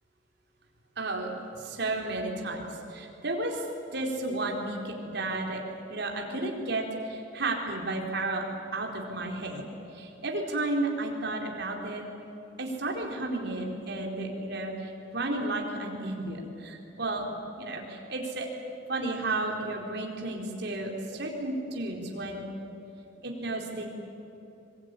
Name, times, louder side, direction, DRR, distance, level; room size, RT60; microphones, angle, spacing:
voice 1, 1.0-2.6 2.9-3.6 3.9-5.6 5.9-9.7 9.9-12.0 12.6-17.2 17.6-18.5 18.9-22.4 23.2-23.9, right 2 dB, 60° right, 1 dB, 4.5 m, -32 dB
24.5 x 23.0 x 10.0 m, 3.0 s
head